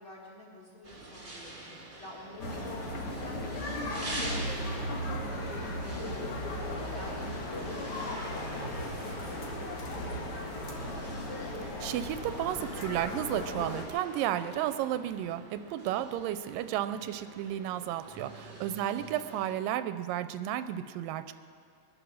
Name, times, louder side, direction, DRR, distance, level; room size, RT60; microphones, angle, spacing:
voice 1, 0.0-11.0 18.4-18.6, left 1 dB, 15° left, -4 dB, 3.9 m, -51 dB
sound 1, 0.8-19.5, right 2 dB, 15° right, 1.1 m, -46 dB
sound 2, 2.4-13.8, left 1 dB, 50° left, 2.1 m, -36 dB
sound 3, 6.1-14.8, left 2 dB, 70° left, 5.0 m, -48 dB
voice 2, 11.6-21.3, right 12 dB, 85° right, 11 dB, 2.2 m, -33 dB
22.5 x 10.0 x 6.2 m, 2.3 s
omnidirectional pair, 3.9 m